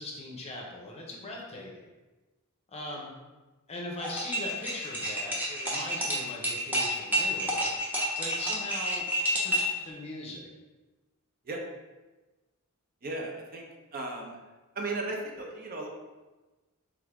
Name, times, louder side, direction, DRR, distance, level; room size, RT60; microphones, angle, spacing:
voice 1, 0.0-1.9 2.7-3.1 3.7-7.7 8.2-10.5, left 1 dB, 30° left, -2 dB, 0.7 m, -40 dB
sound 1, 4.0-9.8, right 1 dB, 10° right, 0.7 m, -29 dB
voice 2, 13.0-13.6 13.9-14.4 14.8-15.9, right 2 dB, 40° right, 0 dB, 0.5 m, -35 dB
3.6 x 3.5 x 3.4 m, 1.2 s
head